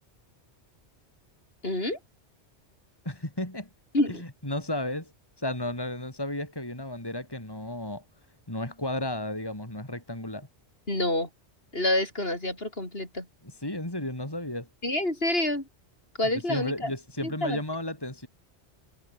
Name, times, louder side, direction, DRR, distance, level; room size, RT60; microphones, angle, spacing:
voice 1, 1.6-2.0 3.9-4.2 10.9-11.3 11.7-13.3 14.8-15.7 16.2-16.9 17.2-17.6, left 1 dB, 55° left, 6.3 m, -27 dB
voice 2, 3.1-3.7 4.1-5.1 5.4-8.0 8.5-10.5 13.4-14.7 16.5-18.3, left 1 dB, 20° left, 3.8 m, -33 dB
omnidirectional pair, 1.2 m